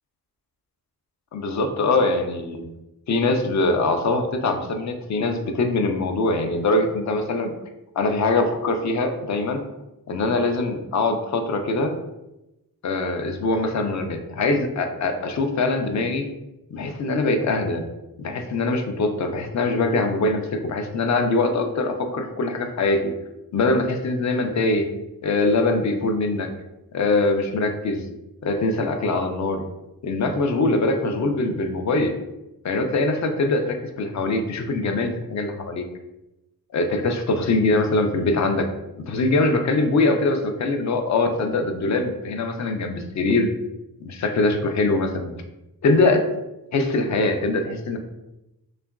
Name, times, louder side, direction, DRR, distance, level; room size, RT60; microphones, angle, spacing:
voice 1, 1.3-2.7 3.1-7.5 8.0-9.6 10.1-11.9 12.8-16.3 16.7-17.8 18.2-23.0 23.5-24.9 25.2-26.5 26.9-28.0 28.4-29.6 30.0-32.1 32.6-35.8 36.7-38.7 39.1-43.5 44.0-45.3 45.8-46.2 46.7-48.0, left 2 dB, 50° left, 6 dB, 0.5 m, -22 dB
2.9 x 2.4 x 2.3 m, 0.94 s
cardioid pair, 65°, 38 cm